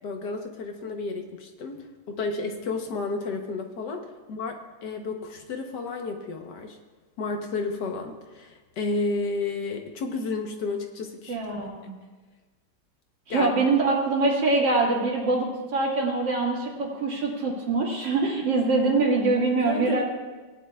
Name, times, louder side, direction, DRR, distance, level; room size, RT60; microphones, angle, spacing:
voice 1, 0.0-4.6 4.8-6.8 7.2-11.7 13.3-13.5 19.7-20.0, left 3 dB, 70° left, 4 dB, 1.5 m, -32 dB
voice 2, 11.3-12.0 13.3-20.0, right 3 dB, 75° right, -3 dB, 2.7 m, -24 dB
17.5 x 9.8 x 2.3 m, 1.3 s
omnidirectional pair, 2.0 m